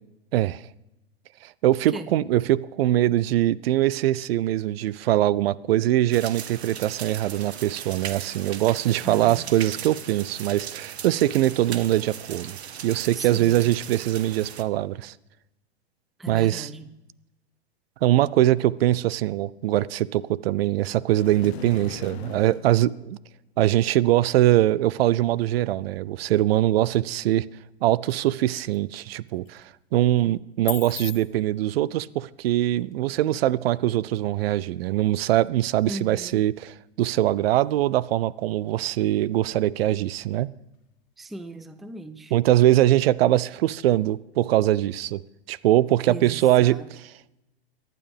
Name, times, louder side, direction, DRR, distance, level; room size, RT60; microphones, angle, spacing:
voice 1, 0.3-0.6 1.4-12.6 12.8-15.1 16.3-16.7 18.0-23.2 23.6-27.5 27.8-40.5 42.3-45.2 45.5-46.8, right 14 dB, 65° right, 21 dB, 0.5 m, -22 dB
sound 1, 6.1-14.6, right 9 dB, 80° right, 1.0 m, -38 dB
voice 2, 9.0-9.5 13.2-13.7 16.2-16.9 35.9-36.4 41.2-42.3 46.1-46.9, right 1 dB, ahead, 11 dB, 0.4 m, -38 dB
sound 2, 21.1-22.7, left 10 dB, 75° left, 1.0 m, -39 dB
sound 3, 27.2-41.2, left 15 dB, 50° left, 1.7 m, -47 dB
23.5 x 9.2 x 3.5 m, 0.96 s
hypercardioid pair, 115°, 32 cm